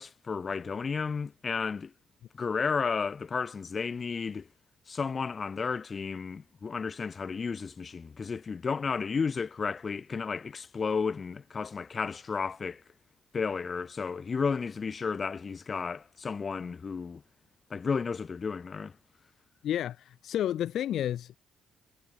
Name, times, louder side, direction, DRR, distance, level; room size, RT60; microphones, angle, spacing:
voice 1, 0.0-1.9 2.3-4.5 4.9-12.8 13.3-17.2 17.7-18.9, left 5 dB, 40° left, 7.7 m, -32 dB
voice 2, 19.6-21.4, left 11 dB, 75° left, 4.4 m, -31 dB
cardioid pair, 90°, 0 cm